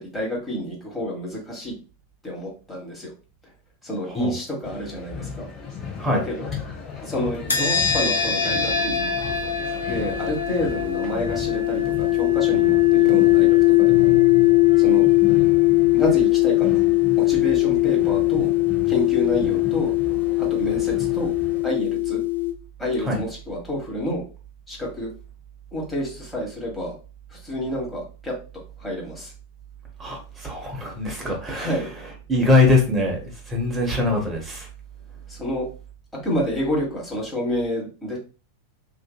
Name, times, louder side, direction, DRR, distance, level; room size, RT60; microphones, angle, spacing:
voice 1, 0.0-1.7 2.2-3.1 3.4-3.5 3.8-5.5 6.3-6.5 7.0-9.1 9.9-14.2 14.8-15.1 15.9-16.8 17.2-18.5 18.8-19.9 20.4-21.4 21.6-22.2 22.8-24.2 24.7-25.1 25.7-27.0 27.3-28.3 28.8-29.3 31.2-31.9 35.3-35.7 36.2-38.2, equal, 5° left, 1.2 m, -29 dB
sound 1, 4.6-21.6, left 6 dB, 30° left, 0.9 m, -35 dB
sound 2, 7.5-22.5, left 16 dB, 75° left, 0.5 m, -20 dB
voice 2, 30.0-31.8 32.3-34.7, left 2 dB, 15° right, 0.9 m, -22 dB
2.7 x 2.6 x 2.2 m
figure-of-eight pair, 90°, 0 cm